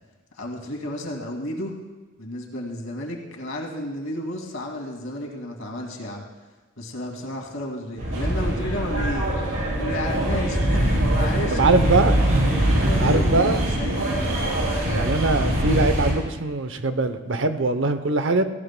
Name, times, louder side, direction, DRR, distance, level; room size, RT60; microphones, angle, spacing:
voice 1, 0.3-1.7 2.2-6.2 6.8-9.3 9.8-12.4 12.7-14.4, left 1 dB, 85° left, 0 dB, 2.2 m, -32 dB
sound 1, 8.0-16.1, right 1 dB, 90° right, 4.1 m, -22 dB
voice 2, 11.6-12.1 13.0-13.6 14.9-18.4, right 3 dB, 65° right, 9 dB, 0.7 m, -22 dB
17.5 x 16.5 x 2.2 m, 1.2 s
head